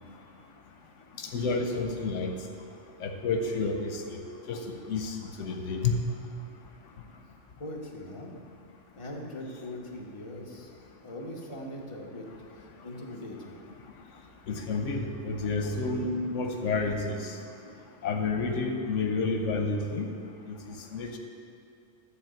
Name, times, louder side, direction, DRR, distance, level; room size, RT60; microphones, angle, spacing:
voice 1, 1.2-2.3 3.0-4.2 4.5-4.6 4.9-6.0 14.5-17.3 18.0-20.1 20.9-21.2, left 3 dB, 80° left, 4 dB, 1.1 m, -30 dB
voice 2, 7.6-8.3 8.9-10.7 11.0-12.3 12.6-13.5, left 1 dB, 25° left, -2 dB, 1.2 m, -40 dB
12.0 x 4.2 x 7.8 m, 2.4 s
omnidirectional pair, 1.2 m